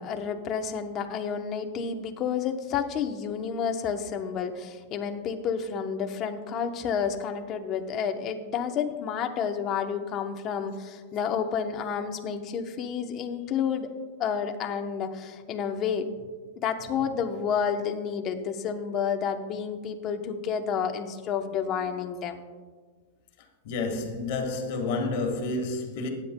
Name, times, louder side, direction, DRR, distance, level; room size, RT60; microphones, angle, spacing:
voice 1, 0.0-13.9 14.2-16.1 16.6-22.4, left 7 dB, 25° left, 0.8 m, -30 dB
voice 2, 23.6-26.1, left 3 dB, 50° left, 1.6 m, -29 dB
20.0 x 9.6 x 2.2 m
supercardioid pair, 165°, 0 cm